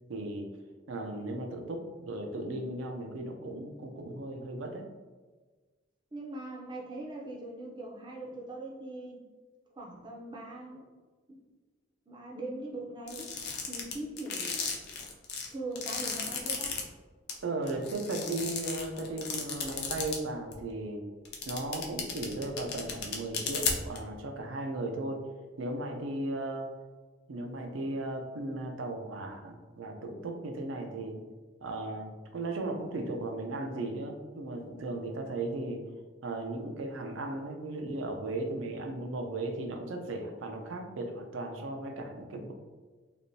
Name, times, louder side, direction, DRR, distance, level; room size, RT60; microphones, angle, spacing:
voice 1, 0.1-0.5 0.9-4.9 17.4-21.0 21.5-25.2 25.6-26.7 27.3-31.2 31.6-35.8 36.2-42.5, right 2 dB, 90° right, 4 dB, 0.5 m, -36 dB
voice 2, 6.1-9.2 9.8-10.9 11.3-11.4 12.1-13.3 13.7-14.6 15.5-16.7, right 2 dB, 25° right, -1 dB, 0.4 m, -41 dB
sound 1, 13.1-16.8 17.3-17.4 17.7-20.2 20.5-20.6 21.2-24.0, left 6 dB, 55° left, 0.5 m, -34 dB
3.4 x 2.5 x 2.6 m, 1.3 s
head